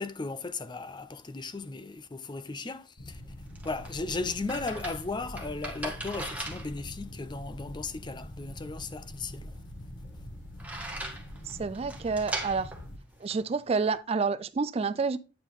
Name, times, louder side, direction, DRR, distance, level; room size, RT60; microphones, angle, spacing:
voice 1, 0.0-3.2 3.6-9.5, left 3 dB, 25° left, 0.6 m, -36 dB
sound 1, 3.0-13.0, left 1 dB, 75° left, 1.8 m, -44 dB
sound 2, 3.1-14.0, right 2 dB, 10° right, 1.7 m, -41 dB
voice 2, 11.5-12.7 13.2-15.2, right 4 dB, 30° right, 0.4 m, -29 dB
9.2 x 4.9 x 3.6 m
head